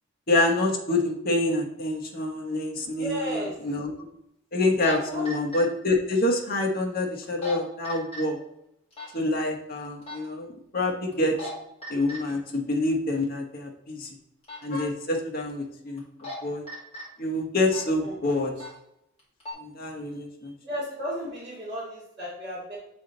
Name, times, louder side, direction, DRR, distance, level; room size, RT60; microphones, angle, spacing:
voice 1, 0.3-4.1 4.5-8.4 9.1-10.5 10.7-11.3 11.9-14.1 14.6-16.0 16.4-16.6 17.2-18.5 19.6-20.5, left 2 dB, 50° left, 1 dB, 1.0 m, -26 dB
voice 2, 3.0-3.5 5.1-5.3 18.0-18.1 20.6-22.8, equal, 30° right, -5 dB, 1.8 m, -34 dB
sound 1, 4.6-4.9 5.2-5.6 7.2-7.5 7.8-8.2 8.9-9.1 10.0-10.2 11.1-11.5 11.8-12.2 14.4-14.6 16.0-16.4 16.7-17.0 17.7-17.9 18.5-18.7 19.2-19.5, left 1 dB, 30° left, 2.3 m, -36 dB
7.0 x 3.5 x 3.8 m, 0.81 s
head